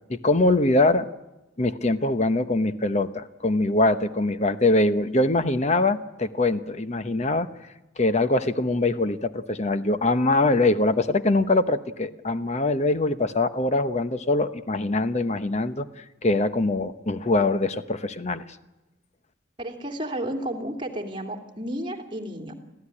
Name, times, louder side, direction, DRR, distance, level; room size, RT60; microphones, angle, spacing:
voice 1, 0.1-1.1 1.6-7.5 8.0-15.9 16.2-18.4, left 2 dB, 35° left, 11 dB, 1.0 m, -23 dB
voice 2, 19.6-22.5, right 1 dB, 25° right, 4 dB, 2.6 m, -32 dB
25.0 x 15.5 x 9.9 m, 1.0 s
head